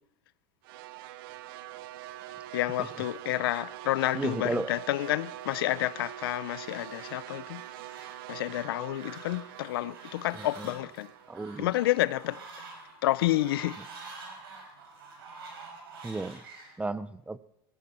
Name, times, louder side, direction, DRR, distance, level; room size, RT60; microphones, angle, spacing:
sound 1, 0.6-12.9, right 14 dB, 70° right, 0.8 m, -44 dB
Fowl, 1.9-16.7, right 3 dB, 85° right, 5.7 m, -49 dB
voice 1, 2.5-7.6 8.3-11.1 11.6-12.4 13.0-13.8, left 16 dB, 80° left, 0.7 m, -29 dB
voice 2, 4.1-4.7 10.4-10.7 11.3-11.7 16.0-16.4 16.8-17.4, right 3 dB, 10° right, 0.7 m, -33 dB
21.0 x 15.0 x 4.4 m
hypercardioid pair, 105°, 12 cm